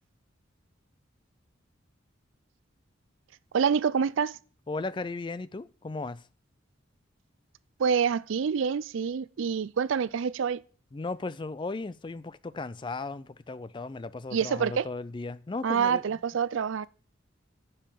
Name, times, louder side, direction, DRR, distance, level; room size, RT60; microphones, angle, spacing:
voice 1, 3.5-4.4 7.8-10.6 14.3-14.9 15.6-16.9, right 6 dB, 80° right, 0.4 m, -27 dB
voice 2, 4.7-6.2 10.9-16.0, left 3 dB, 25° left, 0.4 m, -36 dB
10.0 x 5.6 x 6.8 m
head